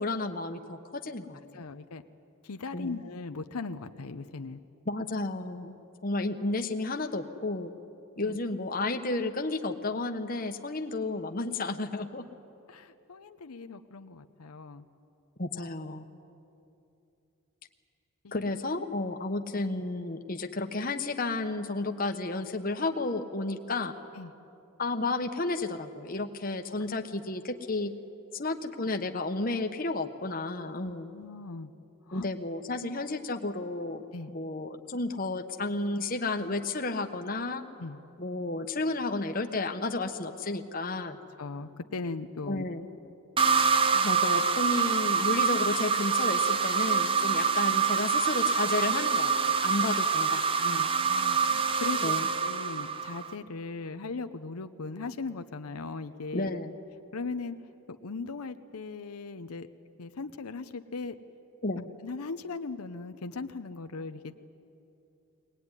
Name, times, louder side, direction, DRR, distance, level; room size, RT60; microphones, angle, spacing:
voice 1, 0.0-1.6 2.7-3.0 4.8-5.8 6.0-7.7 8.2-12.2 15.4-16.1 18.3-23.9 24.8-27.9 28.3-31.1 32.1-34.0 34.3-37.6 38.2-41.2 42.5-42.9 44.0-50.9 52.0-52.3 56.3-56.7 61.6-61.9, left 2 dB, 40° left, 6 dB, 1.1 m, -32 dB
voice 2, 1.5-2.0 2.4-4.6 8.2-8.4 12.7-14.8 18.2-18.3 24.2-24.3 30.8-31.7 32.1-32.3 34.1-34.3 37.8-38.0 41.4-42.6 43.9-44.2 47.3-47.4 50.6-52.1 52.4-56.6 57.1-57.6 57.9-59.7 60.0-61.2 62.0-64.3, left 3 dB, 90° left, 9 dB, 0.8 m, -39 dB
sound 1, 43.4-53.3, right 5 dB, 25° right, 0.6 m, -26 dB
22.5 x 19.0 x 9.8 m, 2.8 s
head